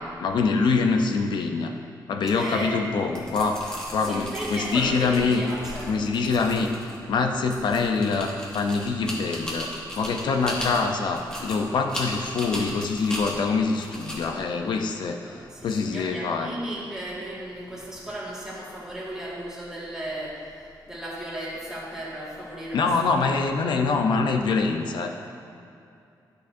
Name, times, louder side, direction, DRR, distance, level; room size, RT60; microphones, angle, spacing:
voice 1, 0.0-1.7 2.1-5.4 5.9-16.6 22.7-25.1, left 4 dB, 75° left, 4 dB, 0.6 m, -25 dB
voice 2, 2.3-2.8 4.1-5.9 15.2-23.4, right 1 dB, 5° right, -7 dB, 1.8 m, -35 dB
sound 1, 3.0-15.7, equal, 10° left, 1.3 m, -37 dB
11.0 x 6.4 x 2.6 m, 2.6 s
wide cardioid pair, 155°, 8 cm